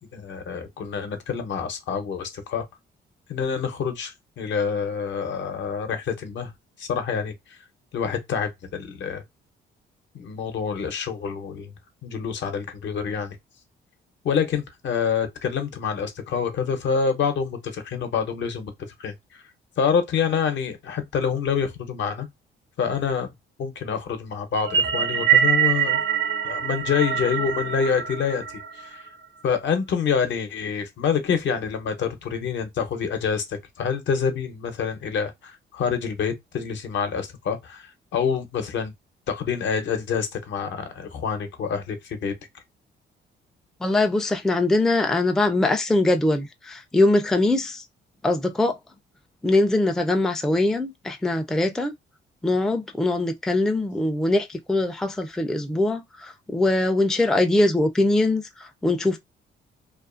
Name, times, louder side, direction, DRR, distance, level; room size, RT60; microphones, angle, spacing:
voice 1, 0.1-2.6 3.3-6.5 6.8-7.3 7.9-9.2 10.1-11.7 12.0-13.4 14.2-18.7 19.0-19.4 19.8-22.3 22.8-23.3 23.6-26.0 26.4-28.4 28.8-29.1 29.4-38.9 39.3-42.3, left 6 dB, 70° left, 0.8 m, -27 dB
sound 1, 24.5-29.1, right 9 dB, 60° right, 0.6 m, -24 dB
voice 2, 43.8-47.8 48.2-48.7 49.4-51.9 52.4-59.2, left 2 dB, ahead, 0.3 m, -22 dB
2.4 x 2.3 x 2.4 m
cardioid pair, 90°, 20 cm